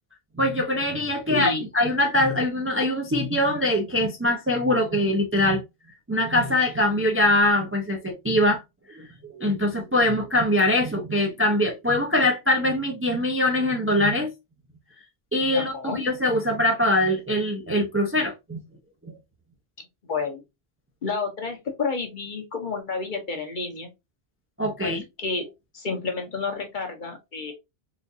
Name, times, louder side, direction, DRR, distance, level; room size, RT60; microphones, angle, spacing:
voice 1, 0.4-5.6 6.1-8.6 8.9-9.1 9.3-14.3 15.3-18.6 19.0-19.1 24.6-25.0, left 1 dB, 20° right, 0.4 m, -23 dB
voice 2, 1.3-1.6 15.5-16.0 20.0-20.4 21.0-23.9 24.8-25.5 25.7-27.5, left 4 dB, 50° left, 1.0 m, -30 dB
3.9 x 2.5 x 2.6 m
omnidirectional pair, 1.0 m